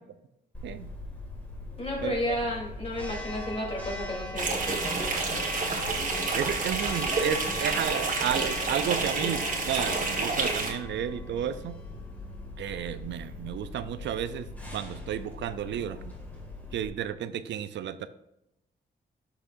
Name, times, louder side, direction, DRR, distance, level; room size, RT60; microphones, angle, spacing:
Church bell, 0.5-16.9, left 2 dB, 10° left, 2.1 m, -40 dB
voice 1, 1.8-5.3, left 1 dB, 35° left, -2 dB, 3.4 m, -33 dB
sound 1, 4.3-10.7, right 3 dB, 45° right, 1.7 m, -29 dB
voice 2, 6.4-11.8 12.6-14.5 14.7-16.1 16.7-18.1, right 10 dB, 90° right, 13 dB, 0.5 m, -32 dB
12.0 x 6.0 x 2.6 m, 0.85 s
cardioid pair, 105°, 18 cm